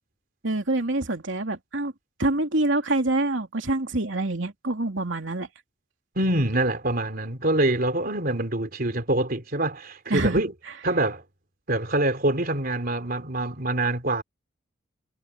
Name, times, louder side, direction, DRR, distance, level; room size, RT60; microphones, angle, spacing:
voice 1, 0.4-1.9 2.2-5.5 10.1-10.4, right 2 dB, 75° right, 3.0 m, -26 dB
voice 2, 6.2-10.5 10.8-11.2 11.7-14.2, right 1 dB, 50° right, 3.5 m, -25 dB
head